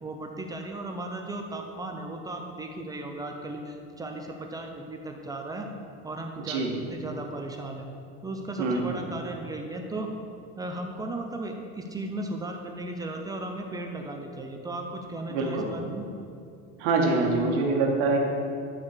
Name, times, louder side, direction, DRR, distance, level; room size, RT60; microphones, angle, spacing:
voice 1, 0.0-5.7 6.0-7.9 8.2-10.1 10.6-16.1, right 2 dB, 15° right, 2 dB, 0.5 m, -36 dB
voice 2, 8.6-9.0 15.3-15.7 16.8-18.2, right 3 dB, 75° right, -1 dB, 2.0 m, -25 dB
12.0 x 4.6 x 6.7 m, 2.5 s
cardioid pair, 170°, 29 cm